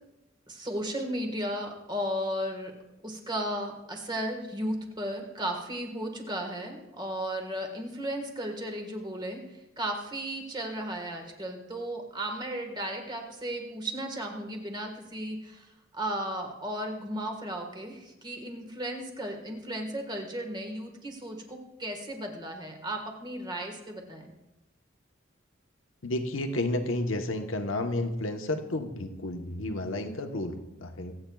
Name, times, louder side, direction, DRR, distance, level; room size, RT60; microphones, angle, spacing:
voice 1, 0.5-2.7 3.0-15.7 15.9-24.3, right 1 dB, 20° right, 3 dB, 1.5 m, -35 dB
voice 2, 26.0-31.1, left 1 dB, 80° left, 5 dB, 1.1 m, -31 dB
25.0 x 8.7 x 2.4 m, 0.97 s
head